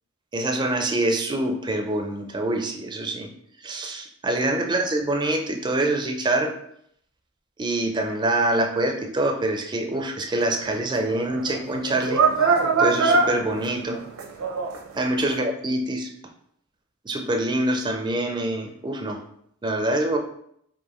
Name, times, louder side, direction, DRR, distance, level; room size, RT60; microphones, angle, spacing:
voice 1, 0.3-3.3 3.6-6.6 7.6-14.0 15.0-16.1 17.1-19.2 19.6-20.2, right 1 dB, 20° right, 4 dB, 0.4 m, -25 dB
sound 1, 10.4-14.9 15.3-15.4, right 4 dB, 75° right, 0.6 m, -23 dB
4.7 x 2.5 x 3.0 m, 0.70 s
head